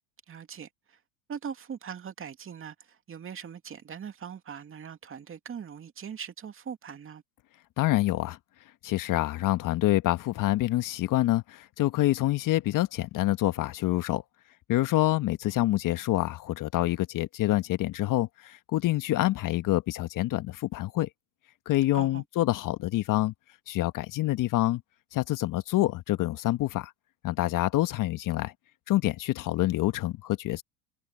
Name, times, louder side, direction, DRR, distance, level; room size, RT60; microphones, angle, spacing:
voice 1, 0.3-1.0 1.3-7.2 21.9-22.2, right 7 dB, 25° right, 2.6 m, -41 dB
voice 2, 7.8-8.4 8.8-14.2 14.7-21.1 21.6-23.3 23.7-24.8 25.1-26.9 27.2-28.5 28.9-30.6, left 16 dB, 40° left, 1.5 m, -26 dB
hypercardioid pair, 95°, 48 cm